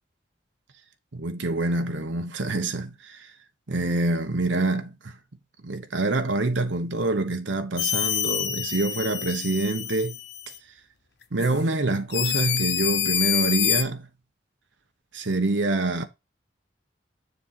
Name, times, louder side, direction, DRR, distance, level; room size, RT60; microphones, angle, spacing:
voice 1, 1.1-3.3 3.7-5.1 5.6-10.2 11.3-14.1 15.1-16.1, right 2 dB, 80° right, 1.0 m, -26 dB
sound 1, 7.8-10.6 11.4-11.5 12.1-13.8, left 10 dB, 60° left, 0.8 m, -27 dB
7.0 x 3.8 x 5.7 m
head